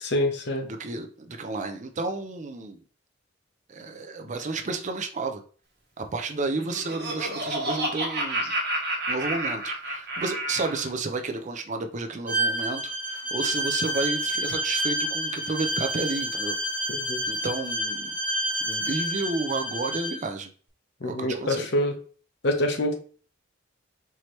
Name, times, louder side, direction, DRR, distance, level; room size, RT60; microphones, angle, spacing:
voice 1, 0.0-0.7 17.0-17.2 21.0-21.9 22.4-23.0, left 1 dB, 60° left, 5 dB, 0.8 m, -26 dB
voice 2, 0.6-2.8 3.7-5.4 6.0-8.5 9.1-16.6 17.3-18.2 18.6-20.5 21.0-21.7, right 3 dB, 40° right, 6 dB, 0.5 m, -31 dB
Laughter, 6.4-10.9, right 1 dB, 55° right, 1.2 m, -30 dB
Bowed string instrument, 12.3-20.2, right 1 dB, 5° right, 1.2 m, -29 dB
4.7 x 2.9 x 3.1 m, 0.42 s
head